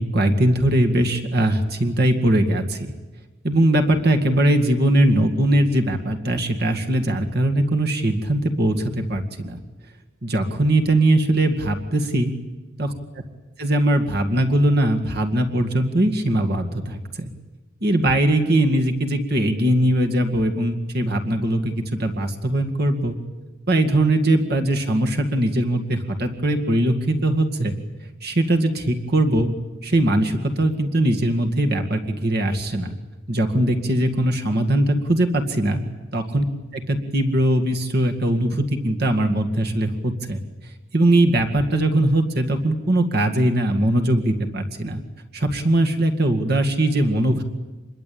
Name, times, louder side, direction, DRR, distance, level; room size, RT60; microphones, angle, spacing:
voice 1, 0.0-2.9 3.4-9.6 10.2-12.3 12.8-12.9 13.6-17.3 17.8-23.2 23.7-27.8 28.2-29.5 29.8-32.9 33.3-35.8 36.1-36.4 36.7-40.4 40.9-45.0 45.3-47.4, right 1 dB, 50° right, 4 dB, 2.1 m, -20 dB
27.0 x 22.0 x 8.8 m, 1.2 s
head